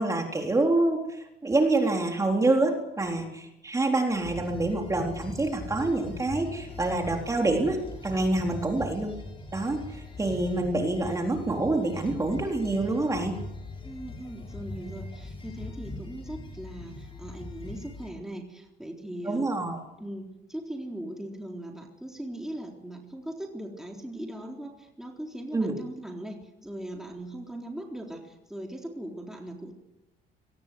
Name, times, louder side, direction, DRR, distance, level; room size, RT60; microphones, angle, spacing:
voice 1, 0.0-7.8 8.0-9.2 9.5-13.4 19.2-19.8 25.5-25.7, right 2 dB, 20° right, 2 dB, 4.0 m, -26 dB
sound 1, 4.2-18.1, left 2 dB, 30° left, 6.5 m, -41 dB
voice 2, 13.8-19.4 20.0-29.7, right 1 dB, 5° right, 1 dB, 3.9 m, -39 dB
24.0 x 19.5 x 7.9 m, 0.92 s
cardioid pair, 110°, 17 cm